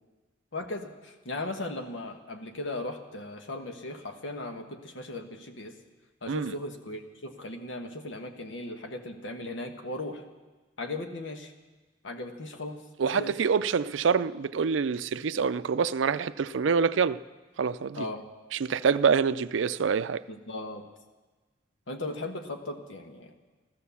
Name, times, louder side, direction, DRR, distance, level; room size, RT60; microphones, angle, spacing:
voice 1, 0.5-5.7 6.2-10.2 10.8-11.5 12.0-13.3 17.9-18.3 20.3-20.8 21.9-23.3, left 2 dB, 80° left, 5 dB, 1.4 m, -37 dB
voice 2, 13.0-17.2 17.6-18.1 18.5-20.2, right 6 dB, 80° right, 14 dB, 0.4 m, -26 dB
14.5 x 13.5 x 7.0 m, 1.3 s
head